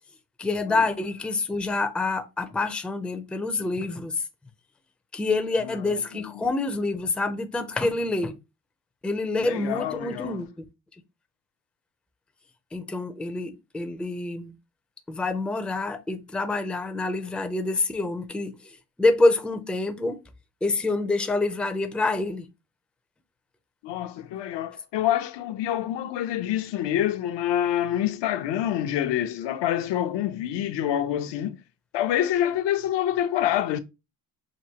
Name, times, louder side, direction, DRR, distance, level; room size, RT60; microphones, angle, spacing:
voice 1, 0.4-4.2 5.1-8.4 9.0-10.6 12.7-14.5 15.1-20.2 20.6-22.5, left 2 dB, 5° left, 0.4 m, -27 dB
voice 2, 5.6-6.3 9.4-10.4 23.8-31.6 31.9-33.8, left 11 dB, 85° left, 0.6 m, -27 dB
6.0 x 2.5 x 2.8 m
cardioid pair, 145°, 41 cm